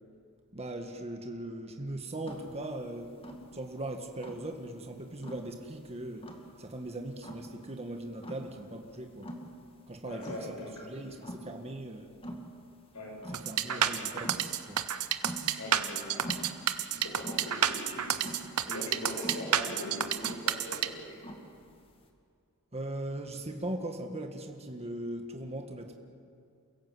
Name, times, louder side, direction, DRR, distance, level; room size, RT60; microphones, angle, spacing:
voice 1, 0.5-3.1 3.5-6.3 6.6-9.3 9.9-12.1 13.3-14.8 22.7-26.0, right 1 dB, 30° right, 4 dB, 1.7 m, -39 dB
sound 1, 2.2-22.1, equal, 25° left, 2.3 m, -45 dB
voice 2, 10.0-11.0 12.9-13.1 13.7-14.0 15.5-16.7 16.9-18.2 18.7-21.3, left 1 dB, 75° left, -1 dB, 7.1 m, -41 dB
sound 2, 13.3-20.9, right 9 dB, 85° right, 1.1 m, -29 dB
29.0 x 16.5 x 7.9 m, 2.4 s
head